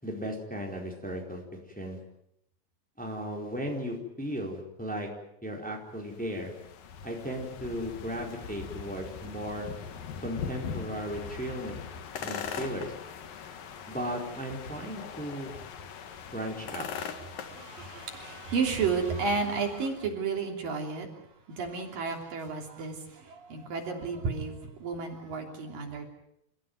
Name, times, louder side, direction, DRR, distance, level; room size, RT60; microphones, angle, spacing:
voice 1, 0.0-1.4 1.8-2.0 3.0-5.1 5.4-6.5 7.0-9.7 10.2-11.8 12.2-12.9 13.9-15.6 16.3-16.9, equal, ahead, 0 dB, 4.0 m, -36 dB
sound 1, 6.0-20.0, left 7 dB, 70° left, 3.4 m, -41 dB
voice 2, 17.3-21.2 21.5-26.1, right 5 dB, 70° right, 2 dB, 4.8 m, -32 dB
29.0 x 15.5 x 9.4 m, 0.79 s
omnidirectional pair, 4.1 m